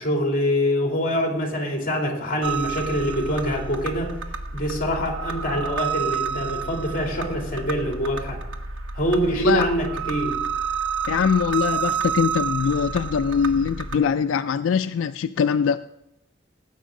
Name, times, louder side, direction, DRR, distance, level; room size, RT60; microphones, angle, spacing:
voice 1, 0.0-4.1 4.5-8.4 8.9-10.4 13.5-13.6, equal, 45° left, 2.8 m, -25 dB
sound 1, 2.4-14.0, right 6 dB, 75° right, 1.0 m, -30 dB
voice 2, 11.1-15.8, left 6 dB, 85° left, 0.3 m, -22 dB
17.5 x 8.1 x 3.7 m
head